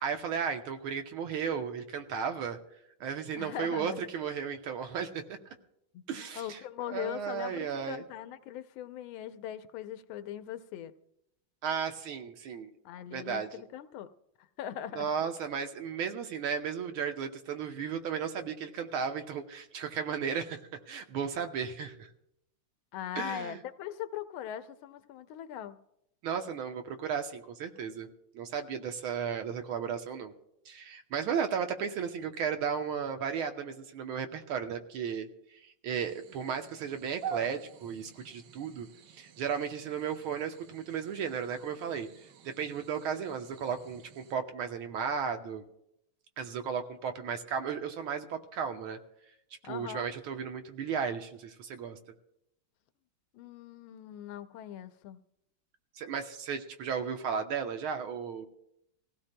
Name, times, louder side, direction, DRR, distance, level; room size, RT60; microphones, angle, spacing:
voice 1, 0.0-2.6 3.0-5.4 6.1-6.6 6.9-8.0 11.6-12.7 13.1-13.5 14.9-20.6 20.9-22.1 23.2-23.6 26.2-28.1 28.3-30.3 30.7-35.3 35.6-38.9 39.1-42.1 42.4-45.6 46.4-49.0 49.6-52.0 56.0-58.5, right 7 dB, 80° right, 6 dB, 1.7 m, -34 dB
voice 2, 3.4-4.0 5.9-6.0 6.4-10.9 12.8-14.1 14.6-15.1 22.9-25.8 49.6-50.1 53.3-55.2, left 10 dB, 80° left, 11 dB, 1.5 m, -40 dB
sound 1, 35.9-44.3, right 7 dB, 65° right, 1.1 m, -47 dB
25.0 x 16.0 x 2.2 m, 0.79 s
omnidirectional pair, 2.3 m